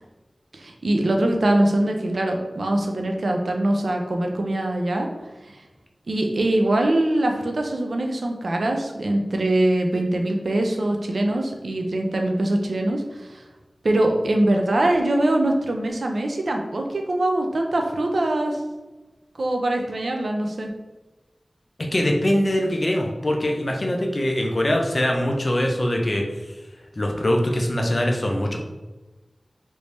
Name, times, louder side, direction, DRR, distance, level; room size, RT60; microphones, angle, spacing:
voice 1, 0.5-5.1 5.4-5.6 6.1-13.4 13.8-18.6 19.4-20.7, right 1 dB, 85° right, 3 dB, 0.4 m, -23 dB
voice 2, 21.9-26.2 27.0-28.6, left 1 dB, 50° left, 1 dB, 0.6 m, -22 dB
3.4 x 2.6 x 3.1 m, 1.2 s
wide cardioid pair, 65°, 0 cm